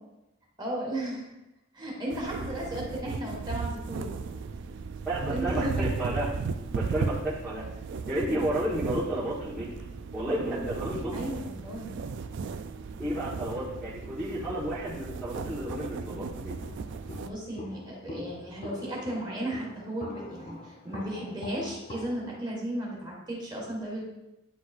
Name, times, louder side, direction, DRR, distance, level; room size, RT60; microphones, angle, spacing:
voice 1, 0.6-1.3 1.7-4.1 5.2-5.9 11.1-11.9 17.2-24.0, right 1 dB, 20° right, -4 dB, 1.6 m, -35 dB
sound 1, 2.1-17.3, right 4 dB, 55° right, 0.3 m, -36 dB
voice 2, 5.0-6.3 6.7-7.6 8.0-9.7 10.1-11.1 13.0-16.5, right 1 dB, 5° right, -13 dB, 1.2 m, -32 dB
Walk footsteps, 15.7-22.4, left 2 dB, 30° left, 0.4 m, -44 dB
9.8 x 4.2 x 2.5 m, 0.97 s
head